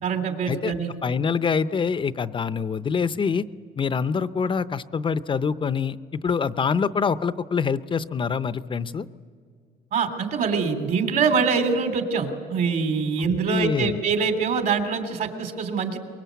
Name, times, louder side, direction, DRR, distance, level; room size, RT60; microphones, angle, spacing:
voice 1, 0.0-0.9 9.9-16.0, right 5 dB, 60° right, 6 dB, 3.1 m, -24 dB
voice 2, 1.0-3.5 3.8-9.1 13.5-14.0, left 6 dB, 30° left, 14 dB, 0.6 m, -25 dB
23.5 x 22.0 x 8.3 m, 2.1 s
cardioid pair, 110°, 17 cm